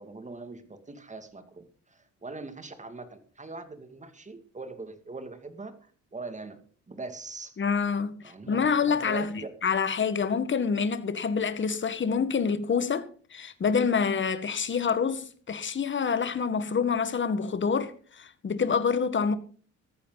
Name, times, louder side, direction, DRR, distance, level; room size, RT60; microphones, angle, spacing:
voice 1, 0.0-6.6 6.9-7.5 8.2-9.3, right 3 dB, 25° right, 2.5 m, -42 dB
voice 2, 7.6-9.3 9.6-19.4, left 6 dB, 40° left, 1.7 m, -27 dB
14.5 x 14.0 x 4.1 m
cardioid pair, 90°, 30 cm